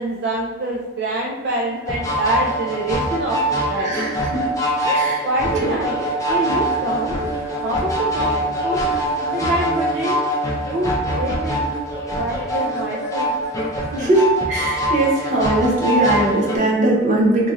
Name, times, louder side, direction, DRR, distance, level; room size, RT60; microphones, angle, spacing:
voice 1, 0.0-3.4 3.7-3.9 4.8-5.0 5.3-7.3 7.6-8.3 8.6-8.8 9.3-10.2 10.7-11.6 12.1-13.3 13.9-14.1, right 2 dB, 60° right, -3 dB, 0.4 m, -25 dB
sound 1, 1.9-16.6, equal, 20° left, 0.5 m, -23 dB
voice 2, 3.8-4.4 4.9-5.2 5.6-5.7 14.0-17.5, right 1 dB, 40° right, -3 dB, 0.8 m, -19 dB
3.0 x 2.4 x 3.8 m, 1.2 s
head